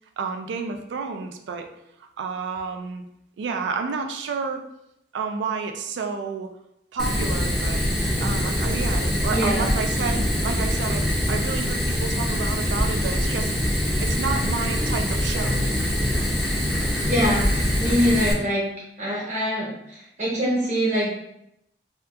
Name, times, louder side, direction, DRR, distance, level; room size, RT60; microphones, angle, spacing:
voice 1, 0.2-1.7 2.2-3.0 3.4-4.6 5.1-6.5 6.9-7.9 8.2-13.5 14.0-15.7, right 5 dB, 85° right, 5 dB, 0.3 m, -30 dB
Fire, 7.0-18.3, equal, ahead, 0.4 m, -24 dB
voice 2, 9.3-9.7 17.0-18.7 19.0-21.1, equal, 40° right, -5 dB, 0.9 m, -24 dB
2.7 x 2.3 x 2.3 m, 0.79 s
head